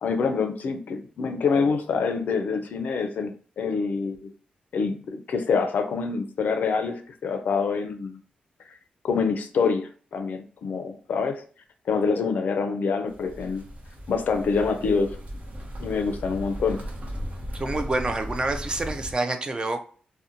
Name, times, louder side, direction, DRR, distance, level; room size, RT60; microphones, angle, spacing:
voice 1, 0.0-4.2 4.7-8.2 9.0-11.4 11.9-13.6 14.1-15.2 15.8-16.8, left 5 dB, 70° left, 7 dB, 0.4 m, -26 dB
sound 1, 13.1-19.1, equal, 55° right, 0.7 m, -36 dB
voice 2, 17.5-19.8, right 2 dB, 30° right, 6 dB, 0.4 m, -27 dB
2.5 x 2.1 x 2.7 m, 0.42 s
cardioid pair, 80°, 3 cm